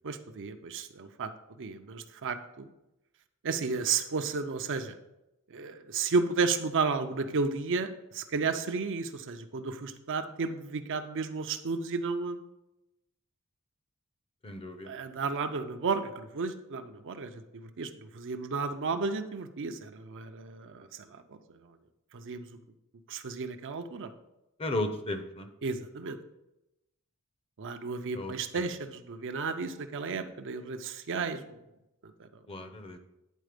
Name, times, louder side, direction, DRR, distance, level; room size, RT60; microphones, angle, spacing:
voice 1, 0.0-1.3 1.6-2.7 3.4-5.0 5.5-12.5 14.9-21.4 22.1-22.6 23.1-24.1 25.6-26.2 27.6-31.4 32.2-32.3, right 4 dB, 60° right, 7 dB, 0.6 m, -33 dB
voice 2, 14.4-14.9 24.6-25.5 28.1-28.7 32.5-33.0, left 1 dB, 25° left, 8 dB, 0.6 m, -35 dB
9.2 x 4.1 x 5.1 m, 0.92 s
head